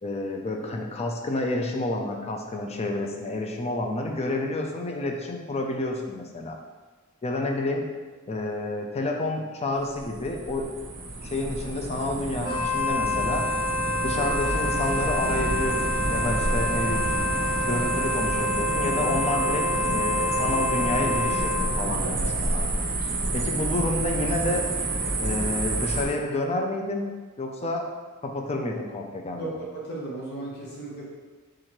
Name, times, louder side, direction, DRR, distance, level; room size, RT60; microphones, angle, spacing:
voice 1, 0.0-6.6 7.2-7.8 8.3-10.7 11.2-13.4 14.0-17.1 17.7-19.7 19.9-22.8 23.3-24.6 25.2-27.1 27.4-27.9 28.2-29.6, left 2 dB, 30° left, 2 dB, 0.5 m, -29 dB
sound 1, 9.8-26.0, right 2 dB, 45° right, 0.7 m, -29 dB
Wind instrument woodwind instrument, 12.4-21.7, left 2 dB, 85° left, 0.9 m, -28 dB
sound 2, 14.4-19.9, equal, ahead, 1.1 m, -45 dB
voice 2, 29.4-31.0, right 2 dB, 50° left, -4 dB, 0.8 m, -35 dB
3.7 x 3.1 x 4.4 m, 1.3 s
head